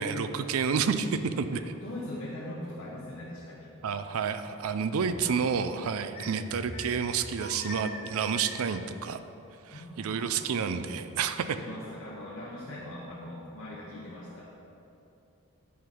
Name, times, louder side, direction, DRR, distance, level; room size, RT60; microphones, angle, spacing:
voice 1, 0.0-1.6 3.8-9.2 9.6-11.6, right 6 dB, 70° right, 11 dB, 0.4 m, -30 dB
voice 2, 1.5-3.7 6.1-6.2 9.7-10.4 11.4-14.5, left 1 dB, 60° left, -7 dB, 1.1 m, -41 dB
sound 1, 4.9-5.5 6.1-8.8, left 1 dB, 25° left, 1.7 m, -42 dB
9.3 x 3.9 x 6.1 m, 2.9 s
head